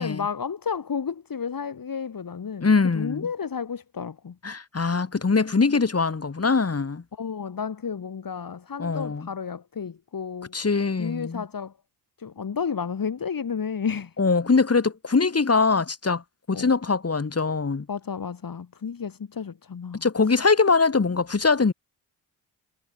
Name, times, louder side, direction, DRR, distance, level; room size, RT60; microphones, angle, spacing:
voice 1, 0.0-2.7 2.9-4.4 7.1-10.6 11.0-11.7 12.2-14.1 16.5-16.7 17.9-20.0, left 6 dB, 50° left, 3.3 m, -32 dB
voice 2, 2.6-3.3 4.4-7.0 8.8-9.3 10.5-11.4 14.2-16.2 16.5-17.9 20.0-21.7, left 4 dB, 35° left, 3.2 m, -22 dB
supercardioid pair, 50°, 44 cm